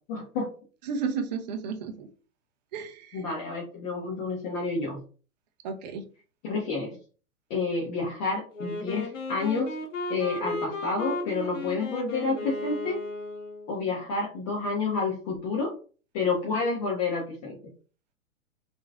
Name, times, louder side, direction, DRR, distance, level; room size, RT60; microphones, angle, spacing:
voice 1, 0.1-0.5 3.1-5.0 6.4-7.0 7.5-9.7 10.1-13.0 13.7-15.7 16.1-17.6, left 4 dB, 25° left, -1 dB, 0.6 m, -29 dB
voice 2, 0.8-2.1 2.7-3.3 5.6-6.0, right 5 dB, 35° right, 6 dB, 0.4 m, -33 dB
Wind instrument woodwind instrument, 8.5-13.7, left 2 dB, 65° left, 0.8 m, -35 dB
3.0 x 2.4 x 2.3 m, 0.38 s
figure-of-eight pair, 115°, 40 cm